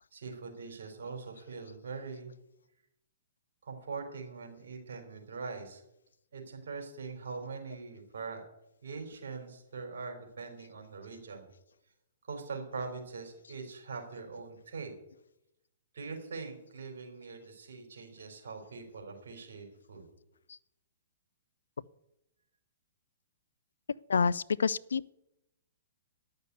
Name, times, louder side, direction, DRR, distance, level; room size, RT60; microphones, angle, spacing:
voice 1, 0.1-2.3 3.6-5.8 6.3-8.4 8.8-11.5 12.2-14.9 15.9-20.0, right 4 dB, 70° right, 3.8 m, -42 dB
voice 2, 24.6-25.1, left 5 dB, 80° left, 0.4 m, -27 dB
10.5 x 6.7 x 8.2 m
hypercardioid pair, 125°, 0 cm